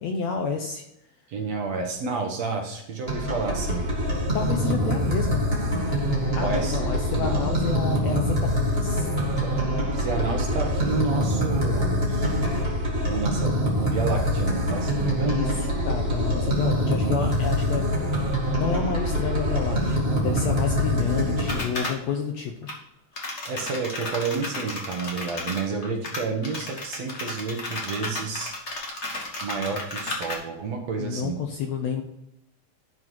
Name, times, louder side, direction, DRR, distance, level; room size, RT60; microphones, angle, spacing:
voice 1, 0.0-0.8 4.3-5.4 6.3-9.1 15.2-22.7 31.0-32.0, left 6 dB, 70° left, 3 dB, 1.7 m, -30 dB
voice 2, 1.3-3.9 6.4-6.8 7.1-7.5 9.3-9.7 9.9-12.3 13.1-13.6 13.8-15.4 23.5-28.5 29.4-31.4, right 4 dB, 60° right, 2 dB, 2.1 m, -30 dB
sound 1, 3.1-21.6, equal, 25° right, 1.3 m, -25 dB
sound 2, 21.5-22.0 22.6-22.7 23.2-30.3, left 2 dB, 40° left, 0.9 m, -33 dB
11.5 x 4.8 x 4.6 m, 0.80 s
omnidirectional pair, 3.8 m